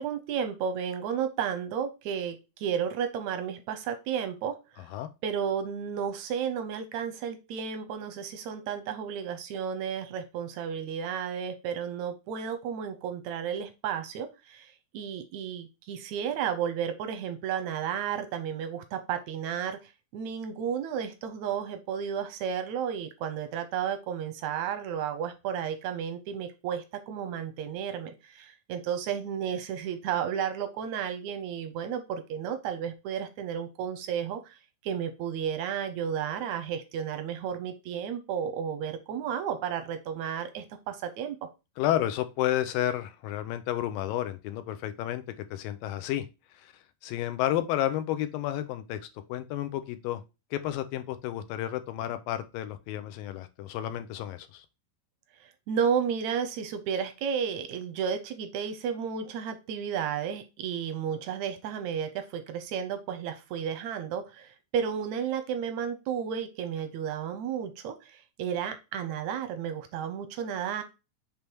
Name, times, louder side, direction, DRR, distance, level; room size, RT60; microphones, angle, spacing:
voice 1, 0.0-4.8 5.2-19.8 20.1-34.5 34.8-41.4 55.7-70.8, right 8 dB, 75° right, 9 dB, 1.6 m, -32 dB
voice 2, 41.8-45.2 45.5-46.3 46.5-46.7 47.0-49.0 49.3-50.2 50.5-54.7, left 12 dB, 85° left, 11 dB, 2.4 m, -31 dB
6.6 x 3.5 x 4.5 m, 0.27 s
omnidirectional pair, 4.0 m